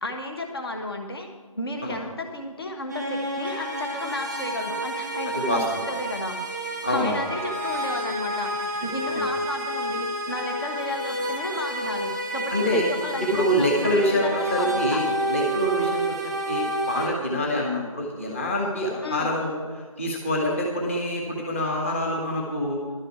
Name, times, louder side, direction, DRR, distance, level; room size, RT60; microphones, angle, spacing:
voice 1, 0.0-1.3 1.5-15.0 19.0-19.3, left 2 dB, 45° left, 3 dB, 1.3 m, -33 dB
sound 1, 2.9-17.1, right 1 dB, ahead, 1.1 m, -29 dB
voice 2, 5.3-5.9 6.8-7.2 9.1-9.2 12.5-12.9 13.2-16.0 16.5-19.6 20.0-22.8, equal, 20° left, -1 dB, 1.4 m, -26 dB
12.0 x 6.5 x 8.0 m, 1.5 s
figure-of-eight pair, 160°, 18 cm